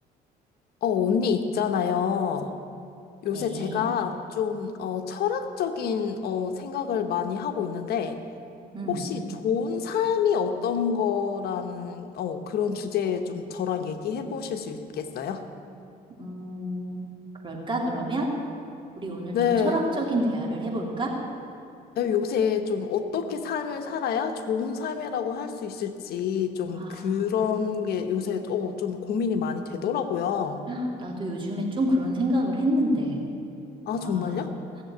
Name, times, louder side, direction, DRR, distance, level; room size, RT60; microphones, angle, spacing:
voice 1, 0.8-2.5 3.2-8.2 8.9-15.5 19.3-19.8 22.0-30.6 33.9-34.5, left 7 dB, 65° left, 7 dB, 1.1 m, -27 dB
voice 2, 3.3-3.8 8.7-9.0 16.2-17.0 17.4-18.3 19.0-21.1 26.7-27.3 30.7-33.2 34.0-34.4, equal, 30° right, -1 dB, 3.0 m, -28 dB
16.5 x 7.5 x 9.0 m, 2.6 s
cardioid pair, 110°, 17 cm